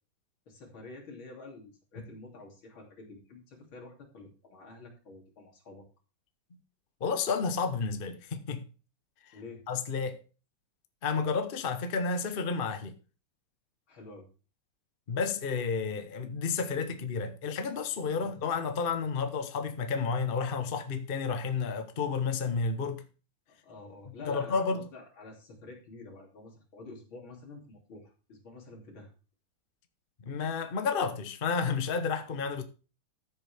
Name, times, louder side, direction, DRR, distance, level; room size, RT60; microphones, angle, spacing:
voice 1, 0.5-5.9 9.3-9.7 13.9-14.3 18.2-18.4 23.6-29.1, left 3 dB, 75° left, 3.7 m, -48 dB
voice 2, 7.0-8.6 9.7-10.2 11.0-12.9 15.1-23.0 24.3-24.8 30.2-32.6, left 5 dB, 40° left, 0.9 m, -31 dB
14.0 x 7.6 x 3.5 m
omnidirectional pair, 2.2 m